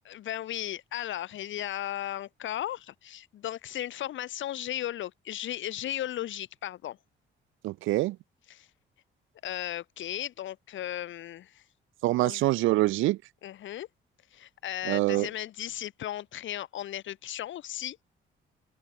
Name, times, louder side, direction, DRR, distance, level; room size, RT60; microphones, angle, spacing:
voice 1, 0.1-7.0 8.5-8.7 9.4-11.6 12.1-12.5 13.4-13.9 14.3-18.0, left 12 dB, 75° left, 1.9 m, -36 dB
voice 2, 7.6-8.2 12.0-13.2 14.9-15.3, right 18 dB, 90° right, 0.6 m, -25 dB
open air
cardioid pair, 90°, 20 cm